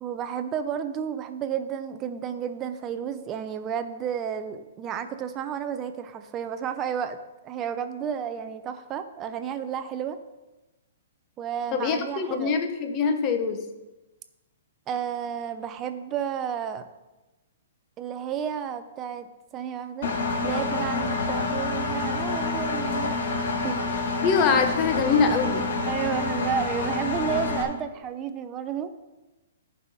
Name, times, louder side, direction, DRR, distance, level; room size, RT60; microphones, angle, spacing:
voice 1, 0.0-7.2 7.4-10.2 11.4-12.6 14.9-16.9 18.0-19.3 19.5-20.1 20.4-23.2 23.6-23.8 25.9-28.9, right 8 dB, 20° right, 9 dB, 0.5 m, -31 dB
voice 2, 11.7-13.6 24.2-25.7, left 5 dB, 25° left, 6 dB, 0.9 m, -23 dB
Engine, 20.0-27.6, left 3 dB, 65° left, 1.5 m, -28 dB
13.5 x 5.5 x 4.1 m, 1.1 s
hypercardioid pair, 165°, 0 cm